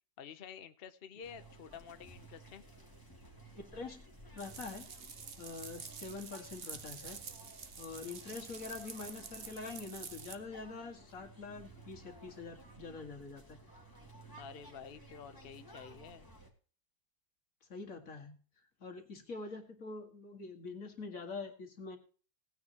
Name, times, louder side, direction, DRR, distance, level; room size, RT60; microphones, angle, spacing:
voice 1, 0.2-2.6 14.4-16.3, left 7 dB, 60° left, 10 dB, 0.6 m, -50 dB
sound 1, 1.2-16.5, right 2 dB, 10° left, 2.3 m, -56 dB
voice 2, 3.6-4.9 5.4-7.2 7.8-13.6 17.7-18.4 18.8-22.0, left 4 dB, 45° left, 3 dB, 2.3 m, -45 dB
sound 2, 4.4-10.3, right 6 dB, 40° right, 0.9 m, -48 dB
17.5 x 9.7 x 2.9 m, 0.40 s
omnidirectional pair, 2.1 m